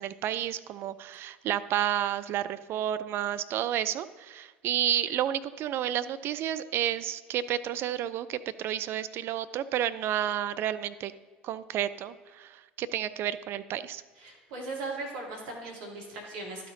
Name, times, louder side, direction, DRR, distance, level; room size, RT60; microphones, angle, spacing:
voice 1, 0.0-11.1 11.4-14.0, right 11 dB, 45° right, 13 dB, 0.4 m, -31 dB
voice 2, 14.2-16.7, right 3 dB, 65° right, -1 dB, 2.2 m, -38 dB
12.0 x 4.3 x 4.0 m, 1.4 s
figure-of-eight pair, 65°, 5 cm